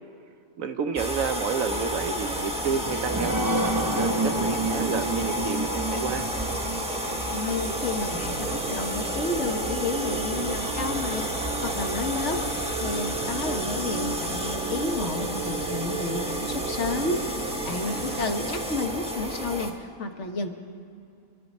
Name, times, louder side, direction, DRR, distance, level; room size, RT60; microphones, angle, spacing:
voice 1, 0.6-3.4 3.9-6.3 17.9-18.3, right 6 dB, 65° right, 8 dB, 1.0 m, -30 dB
sound 1, 1.0-19.7, equal, 5° right, 1.1 m, -31 dB
sound 2, 2.5-9.5 10.0-10.1 10.4-10.5, right 1 dB, 25° right, 0.4 m, -30 dB
sound 3, 7.2-18.7, right 5 dB, 90° right, 1.3 m, -36 dB
voice 2, 7.3-12.4 12.8-20.5, left 3 dB, 55° left, 5 dB, 1.2 m, -31 dB
26.5 x 11.0 x 4.2 m, 2.4 s
omnidirectional pair, 1.6 m